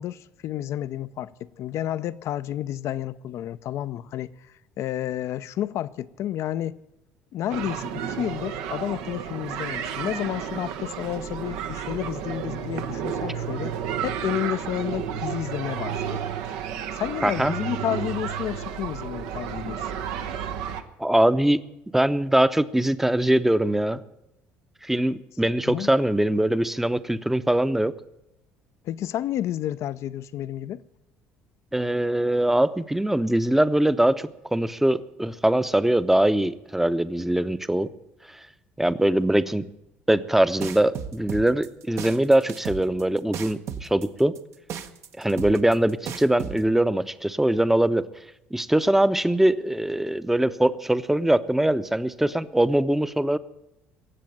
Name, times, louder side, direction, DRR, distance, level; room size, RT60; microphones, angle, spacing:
voice 1, 0.0-4.3 4.8-6.8 7.3-13.8 14.0-16.2 16.5-16.6 16.9-19.9 25.7-25.9 28.8-30.8, left 12 dB, 60° left, 0.6 m, -31 dB
sound 1, 7.5-20.8, right 8 dB, 80° right, 1.0 m, -32 dB
voice 2, 17.2-17.5 21.0-21.6 21.9-24.0 24.8-27.9 31.7-37.9 38.8-39.7 40.1-44.3 45.2-48.0 48.5-53.4, right 1 dB, 5° right, 0.7 m, -22 dB
sound 2, 40.6-46.6, right 8 dB, 60° right, 1.0 m, -34 dB
18.0 x 7.6 x 9.1 m
supercardioid pair, 75°, 5 cm